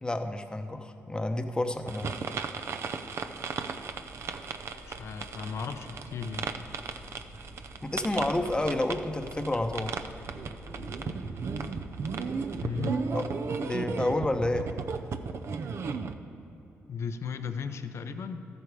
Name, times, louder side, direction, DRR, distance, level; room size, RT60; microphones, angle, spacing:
voice 1, 0.0-2.1 7.8-9.9 13.1-13.2 13.6-14.7, left 1 dB, 15° left, 7 dB, 0.9 m, -30 dB
sound 1, 1.9-16.2, right 5 dB, 60° right, 0.6 m, -36 dB
sound 2, 2.5-15.8, left 1 dB, 40° right, 1.3 m, -50 dB
voice 2, 4.9-6.7 12.6-13.3 16.9-18.5, left 5 dB, 60° left, 9 dB, 0.7 m, -36 dB
13.5 x 8.1 x 4.8 m, 3.0 s
cardioid pair, 70°, 5 cm